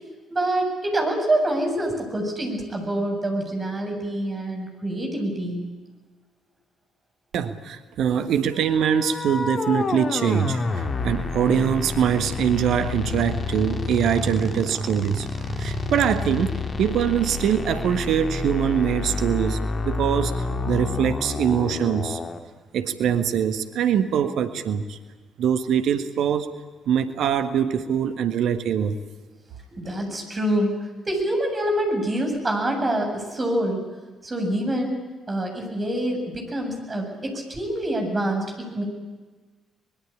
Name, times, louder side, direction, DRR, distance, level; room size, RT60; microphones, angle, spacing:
voice 1, 0.3-5.6 29.8-30.7 31.1-33.8 34.2-35.0 35.3-38.8, right 1 dB, 25° right, 2 dB, 7.8 m, -26 dB
voice 2, 7.3-22.2 22.7-25.0 25.4-26.5 26.9-29.0, right 8 dB, 55° right, 10 dB, 1.4 m, -23 dB
sound 1, 8.5-22.4, left 4 dB, 35° left, 2.2 m, -29 dB
24.5 x 21.5 x 8.7 m, 1.3 s
figure-of-eight pair, 45°, 0 cm